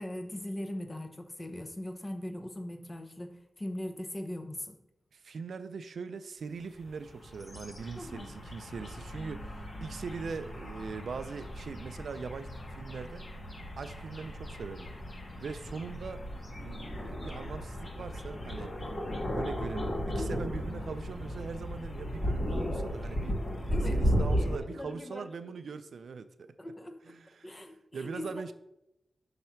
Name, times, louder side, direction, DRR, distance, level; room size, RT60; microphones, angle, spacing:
voice 1, 0.0-4.8 7.9-8.3 18.8-19.0 23.7-24.0 24.7-25.5 26.6-27.1 27.4-28.4, left 1 dB, 30° left, 0.8 m, -40 dB
voice 2, 5.1-13.3 13.8-14.9 15.4-18.7 19.3-26.5 27.0-27.7 27.9-28.5, right 5 dB, 85° right, 0.4 m, -41 dB
sound 1, 6.8-24.6, equal, 55° left, 1.6 m, -35 dB
5.8 x 3.2 x 5.8 m
wide cardioid pair, 85°, 0 cm